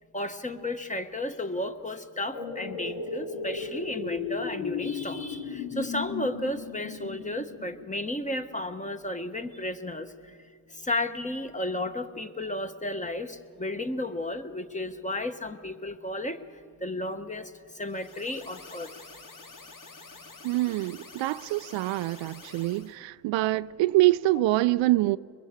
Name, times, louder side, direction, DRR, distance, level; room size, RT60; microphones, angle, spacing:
voice 1, 0.1-10.4 10.7-18.9, left 1 dB, 15° left, 1.2 m, -33 dB
sound 1, 2.3-8.4 8.8-8.9, left 5 dB, 75° left, 3.2 m, -35 dB
sound 2, 17.8-22.9, left 3 dB, 40° left, 2.6 m, -48 dB
voice 2, 20.4-25.2, right 17 dB, 70° right, 0.5 m, -25 dB
22.5 x 22.0 x 7.3 m
supercardioid pair, 75°, 46 cm